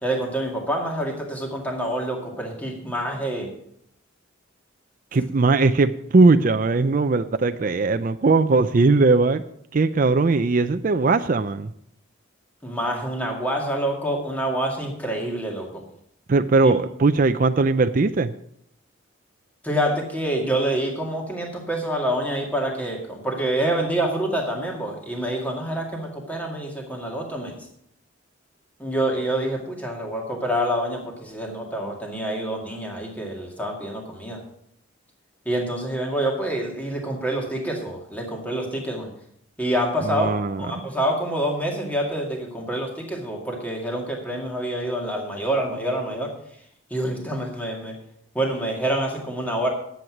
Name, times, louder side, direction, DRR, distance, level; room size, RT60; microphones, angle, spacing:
voice 1, 0.0-3.5 12.6-15.8 16.6-16.7 19.6-27.6 28.8-34.4 35.5-39.1 39.6-40.3 40.6-46.4 46.9-48.0 48.3-49.7, right 1 dB, 5° left, -1 dB, 2.2 m, -27 dB
voice 2, 5.1-9.4 9.7-11.7 16.3-18.3 40.0-40.8, right 3 dB, 40° right, 9 dB, 0.4 m, -19 dB
10.5 x 8.0 x 6.0 m, 0.71 s
head